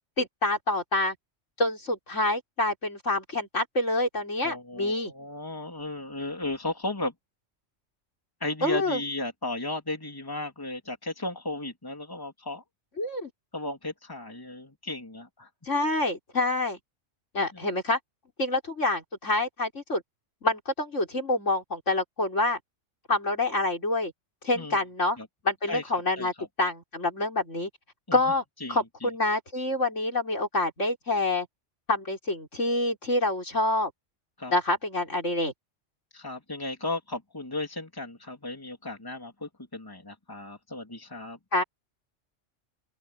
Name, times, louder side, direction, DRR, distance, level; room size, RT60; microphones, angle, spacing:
voice 1, 0.2-1.2 1.6-5.1 8.6-9.0 13.0-13.3 15.6-16.8 17.3-18.0 18.4-20.0 20.4-22.6 23.1-24.1 24.4-25.2 25.4-26.3 26.6-27.7 28.1-28.4 28.7-31.5 31.9-33.9 34.5-35.5 41.5-41.6, left 2 dB, 70° left, 5.7 m, -27 dB
voice 2, 4.4-7.1 8.4-12.6 13.5-15.5 17.5-17.6 24.5-24.8 25.2-25.3 25.7-25.8 26.2-26.5 28.1-28.2 28.6-29.1 34.4-34.5 36.1-41.4, left 2 dB, 15° left, 3.2 m, -35 dB
open air
omnidirectional pair, 1.3 m